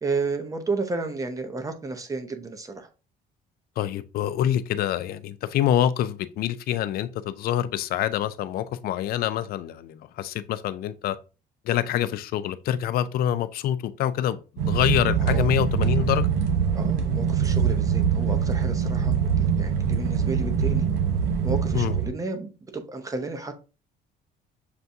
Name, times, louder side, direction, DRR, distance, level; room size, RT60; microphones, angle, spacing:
voice 1, 0.0-2.9 15.2-15.5 16.7-20.8 21.4-23.5, right 3 dB, 20° right, 0.7 m, -32 dB
voice 2, 3.8-11.2 11.7-14.4 14.7-16.3 21.7-21.9, left 11 dB, 65° left, 0.4 m, -26 dB
sound 1, 14.6-22.1, right 7 dB, 90° right, 0.8 m, -23 dB
6.7 x 2.3 x 2.6 m
cardioid pair, 110°, 17 cm